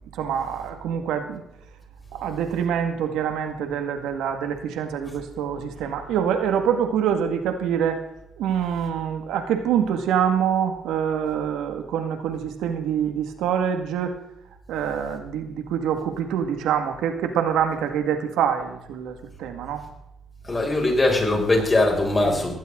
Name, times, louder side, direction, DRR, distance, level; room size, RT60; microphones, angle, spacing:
voice 1, 0.1-1.4 2.1-8.0 8.4-14.1 14.7-19.8 22.2-22.5, right 8 dB, 90° right, 6 dB, 2.0 m, -25 dB
voice 2, 20.5-22.5, left 2 dB, 25° left, 0 dB, 6.4 m, -21 dB
19.0 x 18.0 x 3.9 m, 0.85 s
cardioid pair, 90°, 0 cm